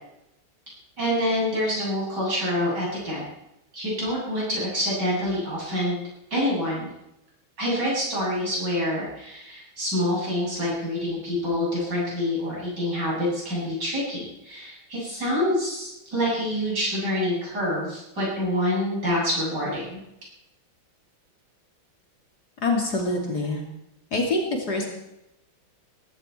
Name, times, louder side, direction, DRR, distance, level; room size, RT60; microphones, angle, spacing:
voice 1, 1.0-3.2 3.7-6.0 6.3-6.9 7.6-20.0, left 1 dB, 55° right, -5 dB, 8.4 m, -26 dB
voice 2, 22.6-23.6 24.1-24.9, left 2 dB, 50° left, 0 dB, 3.3 m, -25 dB
19.0 x 16.5 x 4.5 m, 0.86 s
omnidirectional pair, 2.2 m